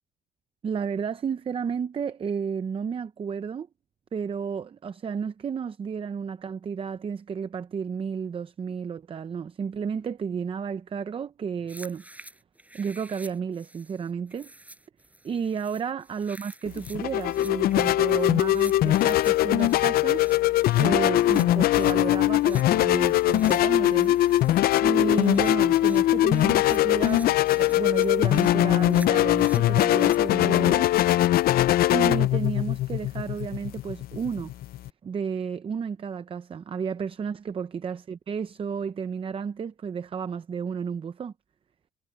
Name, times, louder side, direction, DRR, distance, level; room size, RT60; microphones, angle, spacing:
voice 1, 0.6-3.7 4.1-12.0 12.7-14.5 15.2-30.9 31.9-34.5 35.0-41.3, right 6 dB, 30° right, 0.7 m, -32 dB
sound 1, 11.7-30.2, right 1 dB, 10° right, 5.8 m, -49 dB
sound 2, 16.7-34.9, left 14 dB, 65° left, 0.5 m, -21 dB
cardioid pair, 110°, 17 cm